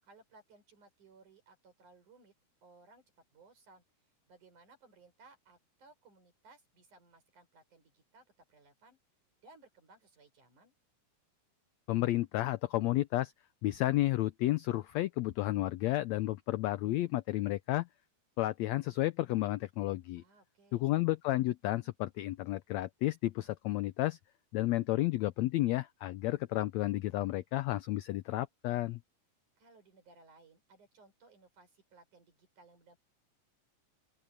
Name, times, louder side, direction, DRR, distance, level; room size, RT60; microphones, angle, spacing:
voice 1, 0.0-2.3 2.6-3.0 3.3-3.8 4.3-9.0 9.4-10.7 20.2-20.9 29.6-33.0, right 3 dB, 65° right, 7.5 m, -61 dB
voice 2, 11.9-13.3 13.6-17.9 18.4-20.2 20.7-24.2 24.5-29.0, left 16 dB, 85° left, 1.5 m, -32 dB
open air
omnidirectional pair, 3.8 m